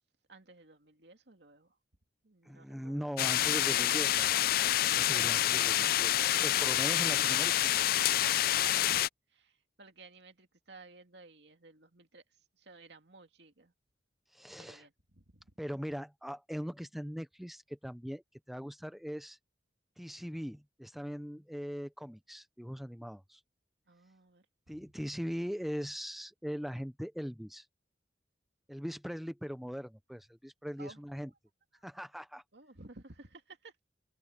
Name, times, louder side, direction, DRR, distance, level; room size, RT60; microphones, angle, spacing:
voice 1, 0.3-1.8 2.2-3.2 8.6-13.7 14.6-15.5 23.9-25.1 30.8-31.0 31.7-31.9 32.5-33.8, right 3 dB, 70° right, 2.6 m, -55 dB
voice 2, 2.4-4.3 4.8-7.9 14.3-14.9 15.6-19.4 20.0-23.4 24.7-27.7 28.7-31.3 31.8-32.4, equal, ahead, 0.6 m, -40 dB
sound 1, 3.2-9.1, left 12 dB, 55° left, 0.4 m, -27 dB
open air
head